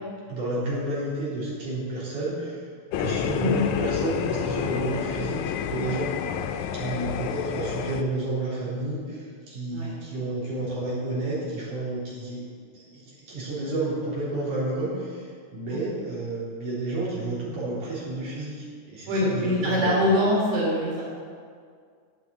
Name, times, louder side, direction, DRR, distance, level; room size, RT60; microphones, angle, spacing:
voice 1, 0.3-2.6 3.0-6.1 6.7-12.5 12.7-20.1, right 2 dB, 90° right, -8 dB, 5.2 m, -31 dB
sound 1, 2.9-8.0, left 8 dB, 80° left, 2.0 m, -29 dB
voice 2, 3.3-3.6 9.7-9.9 15.7-15.8 19.1-21.1, left 1 dB, 60° right, -5 dB, 4.2 m, -24 dB
9.9 x 9.0 x 8.2 m, 2.1 s
omnidirectional pair, 3.5 m